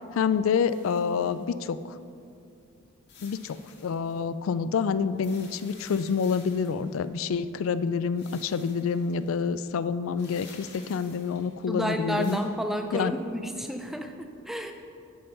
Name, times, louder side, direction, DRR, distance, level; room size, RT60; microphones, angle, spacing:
voice 1, 0.1-1.9 3.2-12.4 12.9-13.1, left 6 dB, 70° left, 14 dB, 0.3 m, -27 dB
sound 1, 0.7-2.0 3.1-4.2 5.1-7.1 8.1-9.3 10.1-11.7 12.1-12.4, left 4 dB, 50° left, 1.9 m, -52 dB
voice 2, 11.7-14.7, equal, ahead, 5 dB, 0.4 m, -31 dB
13.0 x 5.8 x 3.9 m, 2.5 s
head